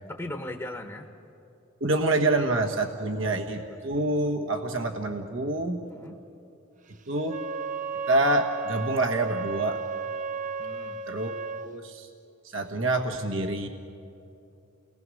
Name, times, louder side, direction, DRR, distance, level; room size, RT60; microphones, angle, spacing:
voice 1, 0.1-1.1 3.1-4.0 5.9-6.2 10.6-11.0, left 1 dB, 15° left, 3 dB, 1.0 m, -39 dB
voice 2, 1.8-5.8 7.1-7.4 8.1-9.8 11.1-12.1 12.4-13.7, right 2 dB, 70° right, 3 dB, 1.3 m, -27 dB
Wind instrument woodwind instrument, 7.2-11.7, right 5 dB, 40° right, 0.6 m, -34 dB
30.0 x 19.5 x 6.4 m, 2.8 s
head